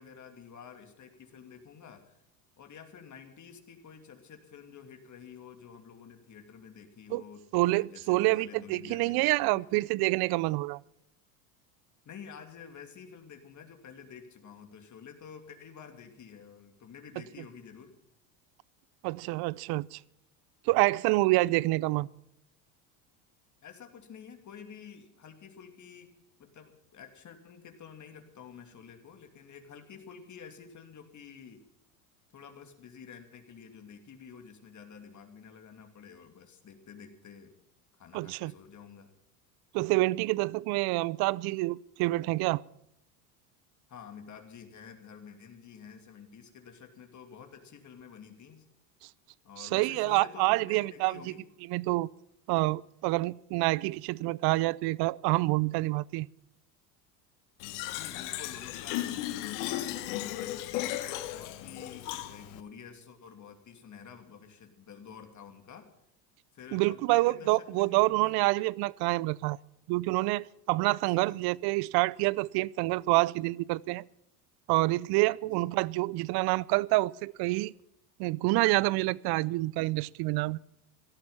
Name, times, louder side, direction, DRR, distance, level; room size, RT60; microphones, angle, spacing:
voice 1, 0.0-2.2 2.6-9.7 12.0-17.9 21.3-21.5 23.6-26.1 26.4-31.6 32.3-37.6 37.9-39.1 43.9-48.7 49.4-51.4 57.8-65.9 66.5-68.4 71.0-71.4 75.5-75.7, left 7 dB, 40° left, 2.8 m, -50 dB
voice 2, 7.5-10.8 19.0-20.0 20.7-22.1 38.1-38.5 39.7-42.6 49.0-49.1 49.6-51.3 51.7-52.1 52.5-56.3 66.7-69.6 69.9-74.0 74.7-77.7 78.2-80.6, right 21 dB, 55° right, 0.6 m, -27 dB
Fill (with liquid), 57.6-62.6, left 14 dB, 70° left, 1.4 m, -35 dB
17.5 x 13.0 x 5.7 m
hypercardioid pair, 90°, 46 cm